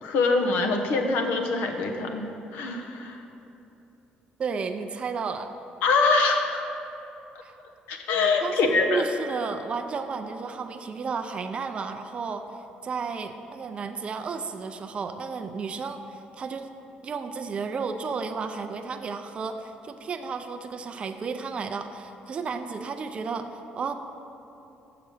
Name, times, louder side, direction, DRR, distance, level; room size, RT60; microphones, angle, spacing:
voice 1, 0.0-3.2 5.8-6.6 7.9-9.0, left 3 dB, 85° left, 4 dB, 0.8 m, -24 dB
voice 2, 4.4-5.5 7.4-7.5 8.4-12.5 12.8-16.7 17.0-23.9, right 5 dB, 35° right, 6 dB, 0.4 m, -33 dB
6.8 x 6.6 x 6.3 m, 3.0 s
cardioid pair, 110°, 3 cm